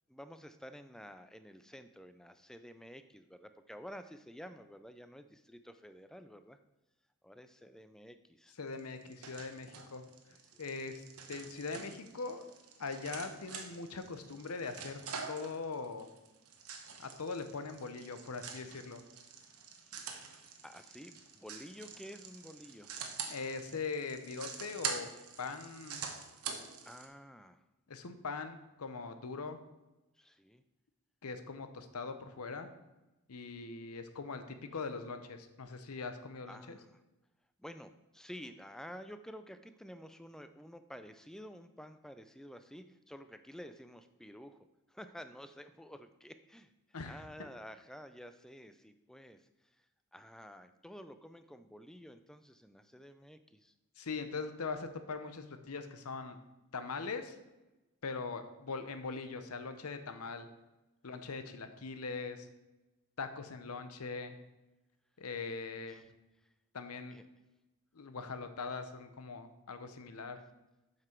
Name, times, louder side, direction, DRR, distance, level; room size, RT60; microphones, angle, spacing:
voice 1, 0.1-6.6 7.2-8.5 10.5-10.7 19.8-20.3 20.6-22.9 26.8-27.6 30.1-30.6 36.5-37.0 37.6-46.7 47.0-49.8 50.1-53.7 65.9-66.1 66.4-66.5 67.1-67.2 70.3-70.5, equal, ahead, 10 dB, 0.3 m, -51 dB
voice 2, 8.6-10.1 10.6-11.0 11.3-12.4 12.8-15.0 15.3-16.1 17.0-19.0 23.3-25.1 25.4-26.1 27.9-29.6 31.2-32.7 33.3-36.8 46.9-47.2 54.0-56.4 56.7-57.4 58.0-60.5 61.0-62.5 63.2-64.4 65.2-66.0 66.7-67.2 67.9-70.4, left 4 dB, 85° left, 9 dB, 0.8 m, -41 dB
sound 1, 8.7-27.1, right 6 dB, 85° right, 1.0 m, -45 dB
7.7 x 6.0 x 4.5 m, 1.0 s
head